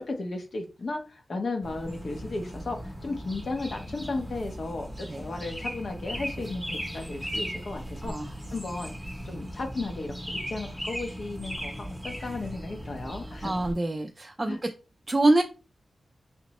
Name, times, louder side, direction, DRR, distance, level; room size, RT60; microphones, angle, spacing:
voice 1, 0.0-8.1 8.5-8.9 9.2-10.2 10.5-13.5 14.5-14.6, left 3 dB, 65° left, 3 dB, 0.8 m, -34 dB
sound 1, 1.6-13.7, equal, 5° left, 0.8 m, -38 dB
voice 2, 8.0-8.3 13.4-14.7 15.1-15.4, right 2 dB, 25° right, 4 dB, 0.3 m, -25 dB
5.8 x 2.0 x 2.9 m, 0.33 s
wide cardioid pair, 85°, 0 cm